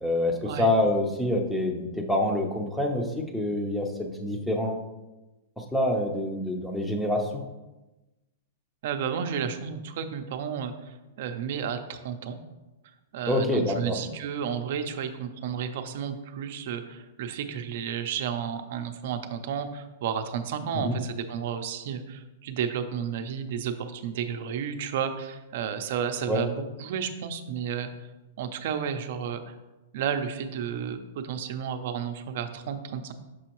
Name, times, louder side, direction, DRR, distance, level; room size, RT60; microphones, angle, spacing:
voice 1, 0.0-4.8 5.6-7.4 13.3-14.0 20.7-21.0 26.3-26.4, left 1 dB, 5° left, 2 dB, 0.6 m, -26 dB
voice 2, 8.8-12.4 13.1-27.9 28.4-29.5 29.9-33.1, right 7 dB, 55° right, 7 dB, 0.5 m, -32 dB
6.1 x 5.5 x 3.0 m, 1.1 s
supercardioid pair, 160°, 0 cm